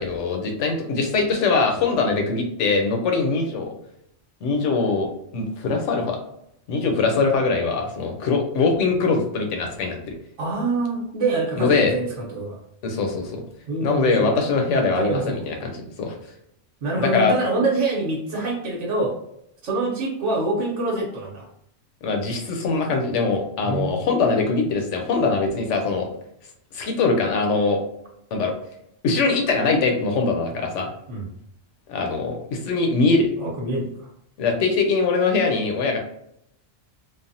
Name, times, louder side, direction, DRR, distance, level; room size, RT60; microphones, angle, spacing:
voice 1, 0.0-3.8 4.4-6.2 6.7-10.1 11.6-11.9 12.8-13.4 13.8-16.1 16.9-17.3 22.0-26.1 26.7-27.8 28.3-28.5 29.0-30.9 31.9-33.3 34.4-36.0, left 4 dB, 85° left, 3 dB, 1.0 m, -22 dB
voice 2, 10.4-12.6 13.7-14.3 14.7-15.4 16.8-19.2 19.6-21.5 23.6-24.0 31.1-31.3 33.4-34.1, right 2 dB, 80° right, -3 dB, 1.1 m, -25 dB
3.3 x 2.0 x 2.6 m, 0.75 s
omnidirectional pair, 1.2 m